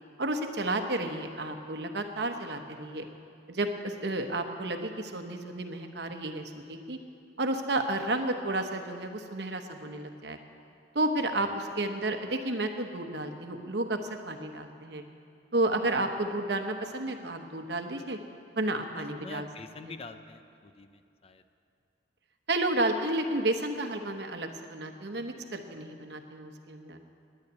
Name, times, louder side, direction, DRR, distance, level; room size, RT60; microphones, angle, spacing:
voice 1, 0.2-3.1 3.5-7.0 7.4-10.4 10.9-15.0 15.5-18.2 18.6-19.5 19.8-19.9 22.5-27.0, right 2 dB, 70° right, 6 dB, 1.0 m, -31 dB
voice 2, 18.9-21.4, left 3 dB, 35° left, 9 dB, 0.6 m, -46 dB
10.0 x 9.7 x 9.5 m, 2.4 s
head